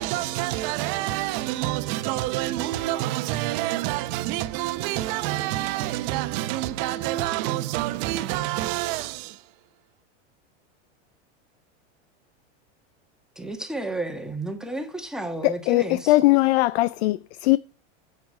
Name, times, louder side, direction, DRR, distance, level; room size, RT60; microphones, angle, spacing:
voice 1, 0.0-9.4, right 15 dB, 50° right, 1.1 m, -27 dB
voice 2, 13.3-16.2, right 2 dB, ahead, 1.5 m, -32 dB
voice 3, 15.4-17.6, left 19 dB, 60° left, 0.5 m, -20 dB
9.7 x 8.2 x 4.8 m
supercardioid pair, 140°, 35 cm